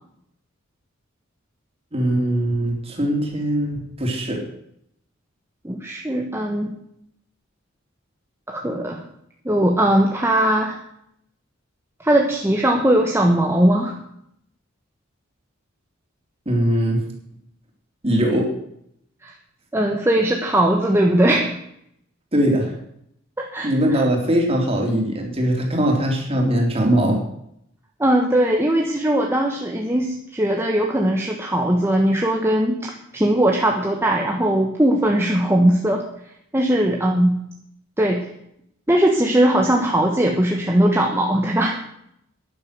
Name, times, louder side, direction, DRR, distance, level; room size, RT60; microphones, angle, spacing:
voice 1, 1.9-4.4 16.4-17.0 18.0-18.5 22.3-22.7 23.6-27.2, right 1 dB, 30° right, 0 dB, 3.4 m, -21 dB
voice 2, 5.6-6.7 8.5-9.0 9.4-10.8 12.0-14.0 19.2-19.3 19.7-21.6 23.4-24.0 28.0-36.0 36.5-37.3 38.0-38.2 38.9-41.8, right 1 dB, 10° right, 0 dB, 1.3 m, -19 dB
12.0 x 10.5 x 6.8 m, 0.73 s
head